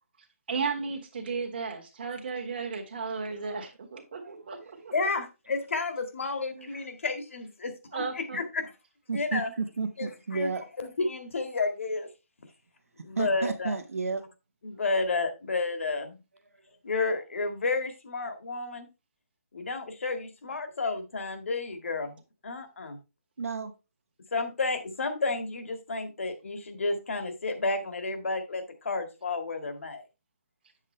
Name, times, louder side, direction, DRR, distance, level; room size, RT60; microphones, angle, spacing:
voice 1, 0.5-4.6 4.8-4.9 6.5-6.8 7.9-8.4, right 5 dB, 40° right, 1.7 m, -34 dB
voice 2, 3.3-3.7 4.2-4.9 9.1-10.7 13.2-14.2 23.4-23.7, right 4 dB, 65° right, 1.3 m, -33 dB
voice 3, 4.9-8.7 9.1-9.5 10.0-10.5 10.8-12.1 13.0-13.8 14.6-16.1 16.8-18.9 19.5-23.0 24.3-30.0, left 3 dB, 60° left, 1.9 m, -31 dB
8.4 x 7.4 x 3.2 m
hypercardioid pair, 175°, 8 cm